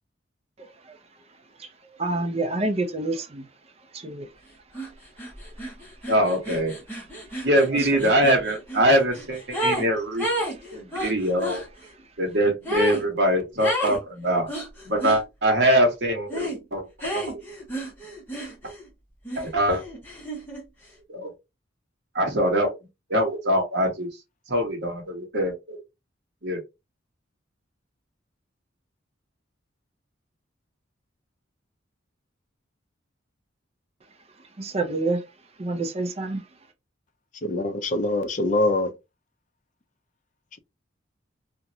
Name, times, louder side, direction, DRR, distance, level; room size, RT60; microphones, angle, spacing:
voice 1, 0.6-1.0 1.6-1.7 2.0-3.5 3.9-4.3 7.6-7.8 8.0-8.2 34.6-35.2 35.6-36.4, right 2 dB, 30° right, 0.5 m, -28 dB
sound 1, 4.7-4.9 5.2-9.9 10.2-11.6 12.6-13.0 13.6-14.0 14.5-15.2 16.3-16.6 17.0-18.9 19.2-20.6, right 1 dB, 10° left, 1.2 m, -31 dB
voice 2, 6.1-6.7 7.4-10.3 10.7-11.6 12.2-14.5 14.8-16.8 17.1-17.3 19.4-19.8 21.1-21.3 22.1-22.8 23.1-24.1 24.5-25.8 26.4-26.6, equal, 60° right, 1.1 m, -23 dB
voice 3, 37.4-38.9, left 2 dB, 40° left, 0.5 m, -24 dB
2.9 x 2.5 x 2.6 m
head